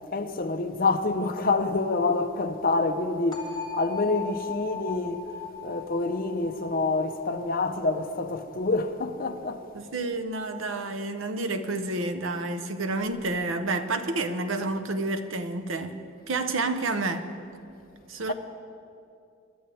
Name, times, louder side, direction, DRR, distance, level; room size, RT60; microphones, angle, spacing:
voice 1, 0.1-5.3 5.6-9.6 18.3-18.4, left 3 dB, 50° left, 0.8 m, -27 dB
sound 1, 3.3-9.2, left 5 dB, 20° left, 2.0 m, -39 dB
voice 2, 9.7-16.0 16.3-17.3 18.1-18.3, right 2 dB, 85° right, 0.9 m, -29 dB
24.5 x 12.5 x 3.5 m
head